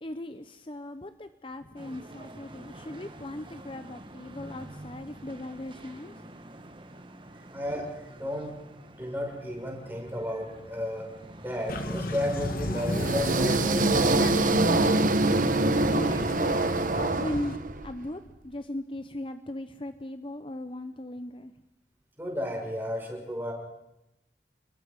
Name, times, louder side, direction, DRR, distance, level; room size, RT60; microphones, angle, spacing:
voice 1, 0.0-6.1 15.8-21.5, left 1 dB, 30° left, 10 dB, 0.9 m, -38 dB
sound 1, 1.8-11.7, right 1 dB, 30° right, 1.8 m, -47 dB
voice 2, 7.5-8.6 9.0-11.1 11.4-14.3 22.2-23.5, left 1 dB, 10° right, 0 dB, 6.4 m, -33 dB
sound 2, 11.7-17.6, left 1 dB, 55° left, 2.2 m, -33 dB
sound 3, 12.8-17.9, right 2 dB, 50° right, 1.2 m, -24 dB
29.5 x 21.5 x 5.4 m, 0.89 s
head